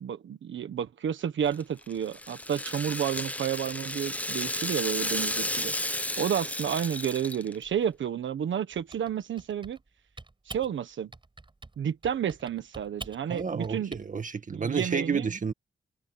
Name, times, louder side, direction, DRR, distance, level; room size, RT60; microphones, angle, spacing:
voice 1, 0.0-5.7 6.2-9.8 10.5-11.1 11.8-13.9 14.5-15.3, right 9 dB, 90° right, 1.3 m, -31 dB
Rattle (instrument), 1.5-7.7, left 1 dB, 5° left, 0.8 m, -33 dB
Typing, 8.7-9.9 10.2-10.7 11.1-11.8 12.0-14.0, right 3 dB, 25° right, 7.6 m, -45 dB
voice 2, 13.3-15.5, right 5 dB, 45° right, 2.0 m, -30 dB
wide cardioid pair, 105°, 19 cm